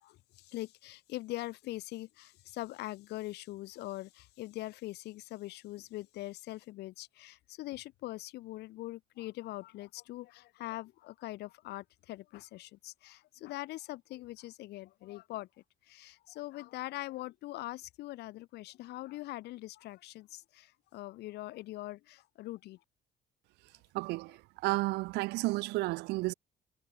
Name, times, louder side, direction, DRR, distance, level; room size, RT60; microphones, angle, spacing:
voice 1, 0.0-15.5 15.8-22.8, left 17 dB, 75° left, 0.9 m, -42 dB
voice 2, 23.9-26.3, right 22 dB, 85° right, 0.4 m, -32 dB
cardioid pair, 110°, 17 cm